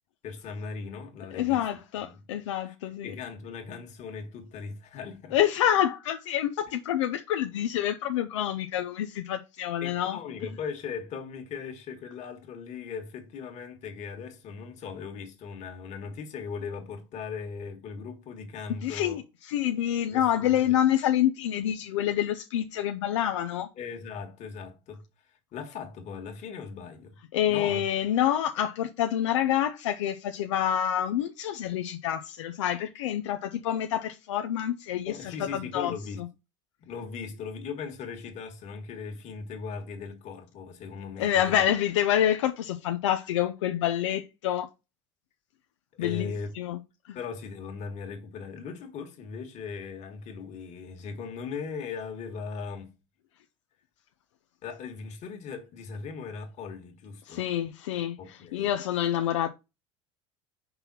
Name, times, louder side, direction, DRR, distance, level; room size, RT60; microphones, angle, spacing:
voice 1, 0.2-1.7 2.0-2.2 2.7-2.8 3.0-5.4 9.8-19.2 20.1-20.8 23.8-27.2 27.5-27.8 35.1-36.3 36.8-41.7 45.9-46.5 47.1-52.9 54.6-57.4 58.2-58.7, left 5 dB, 50° left, 1.8 m, -39 dB
voice 2, 1.3-3.1 5.3-10.2 18.8-23.7 27.3-35.9 41.2-44.7 46.0-46.8 47.0-47.2 57.2-59.5, left 11 dB, 80° left, 0.6 m, -27 dB
5.5 x 4.1 x 4.2 m
hypercardioid pair, 80°, 15 cm